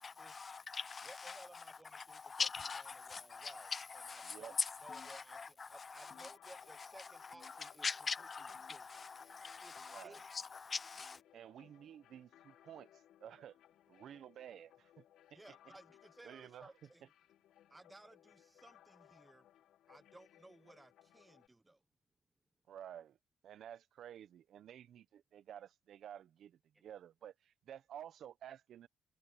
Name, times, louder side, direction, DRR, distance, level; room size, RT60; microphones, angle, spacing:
voice 1, 0.0-1.6 1.9-11.2, left 5 dB, 35° left, 0.5 m, -43 dB
voice 2, 1.0-2.5 2.8-7.9 8.7-8.9 9.6-10.2 15.3-17.0 17.7-19.5 19.9-21.8, right 2 dB, 15° right, 1.2 m, -59 dB
voice 3, 4.2-4.5 9.8-10.2 11.3-12.9 13.2-13.6 13.9-15.0 15.3-15.4 16.2-16.7 22.7-23.2 23.4-28.9, right 10 dB, 70° right, 0.8 m, -52 dB
sound 1, 4.9-5.7 6.1-6.9 7.3-7.9 8.5-9.2 9.8-10.1 11.0-11.2 12.2-12.4 13.4-13.6 14.6-14.8 15.9-16.1 17.1-17.3 18.3-18.4 19.5-19.6, left 9 dB, 50° left, 1.8 m, -67 dB
sound 2, 6.0-21.5, left 12 dB, 80° left, 4.9 m, -66 dB
cardioid pair, 90°, 0 cm